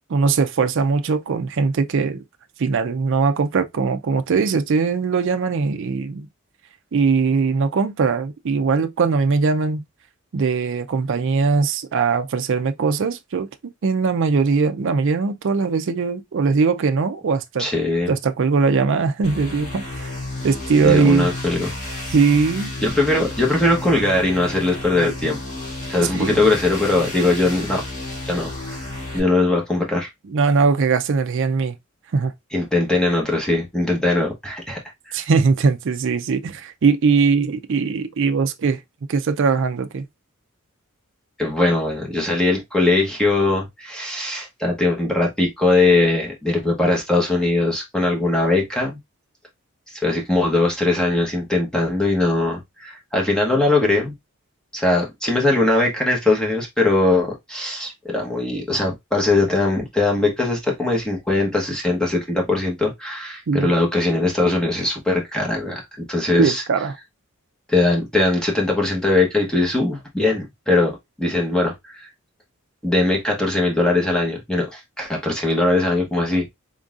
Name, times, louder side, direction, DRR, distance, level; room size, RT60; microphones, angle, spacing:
voice 1, 0.1-2.2 2.6-6.3 6.9-9.8 10.3-13.5 13.8-17.7 18.1-20.1 20.4-21.3 22.1-22.7 26.1-26.5 30.3-31.8 32.1-32.3 35.1-38.8 39.1-40.1 63.5-63.7 66.4-66.9, right 4 dB, 60° right, 0.4 m, -20 dB
voice 2, 17.6-18.1 20.8-21.7 22.8-25.4 25.9-27.8 28.2-30.1 32.5-34.8 35.1-35.2 41.4-49.0 49.9-54.1 54.7-66.6 67.7-72.0 72.8-76.5, left 2 dB, 5° left, 1.0 m, -20 dB
sound 1, 19.2-29.2, left 2 dB, 35° left, 2.2 m, -32 dB
3.9 x 3.7 x 2.4 m
head